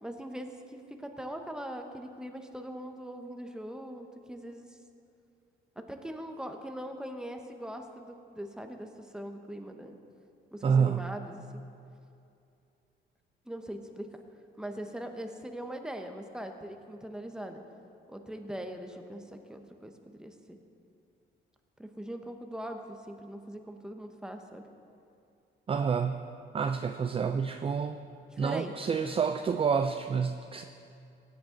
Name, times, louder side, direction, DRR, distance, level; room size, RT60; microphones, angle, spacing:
voice 1, 0.0-4.7 5.8-10.0 10.5-11.6 13.5-14.1 14.6-17.6 18.1-20.6 21.8-24.7 28.3-28.7, equal, 5° right, 5 dB, 1.0 m, -41 dB
voice 2, 10.6-11.1 25.7-26.2 26.5-28.0 28.4-30.6, right 6 dB, 30° right, 7 dB, 0.4 m, -28 dB
17.0 x 8.1 x 3.9 m, 2.5 s
cardioid pair, 90°, 20 cm